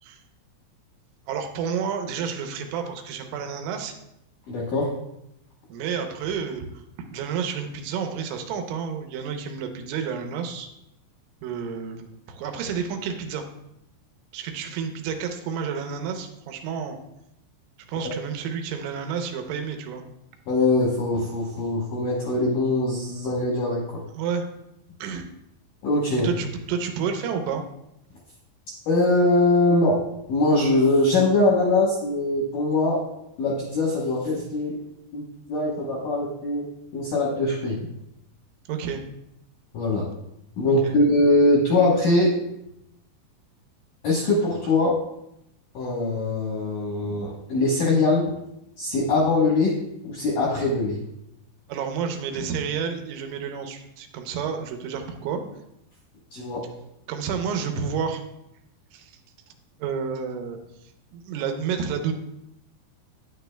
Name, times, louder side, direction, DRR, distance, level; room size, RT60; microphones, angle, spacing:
voice 1, 1.3-3.9 5.7-10.7 11.4-13.4 14.3-17.0 17.9-20.0 24.1-24.4 25.0-25.3 26.2-27.6 38.7-39.0 40.8-40.9 51.7-55.4 57.1-58.2 58.9-59.2 59.8-62.1, right 6 dB, 80° right, 5 dB, 3.1 m, -30 dB
voice 2, 4.5-4.9 20.5-24.0 25.8-26.3 28.9-30.0 30.3-33.0 33.4-34.8 35.1-35.2 35.5-36.6 36.9-37.8 39.7-40.1 40.6-42.3 44.0-45.0 45.7-48.3 48.8-49.8 50.0-51.0 56.3-56.6, left 2 dB, 75° left, -4 dB, 2.0 m, -22 dB
9.3 x 9.2 x 2.2 m, 0.82 s
omnidirectional pair, 5.4 m